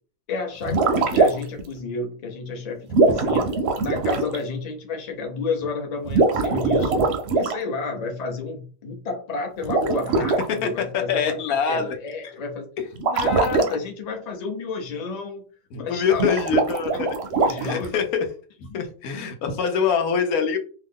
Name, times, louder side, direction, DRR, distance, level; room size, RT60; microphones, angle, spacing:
voice 1, 0.3-3.5 3.8-7.0 7.3-11.4 11.7-12.7 13.0-15.4 15.8-16.5 16.9-17.0 17.3-18.0 18.7-18.9, left 4 dB, 40° left, 3 dB, 0.6 m, -31 dB
sound 1, 0.6-1.6 2.9-4.4 6.0-7.6 9.6-10.4 13.0-13.7 16.1-17.9, right 3 dB, 65° right, 0.7 m, -21 dB
voice 2, 10.9-11.9 13.4-13.5 15.7-17.1 17.6-18.3 18.6-20.6, left 6 dB, 85° left, 6 dB, 1.2 m, -24 dB
2.7 x 2.3 x 3.5 m, 0.39 s
omnidirectional pair, 1.5 m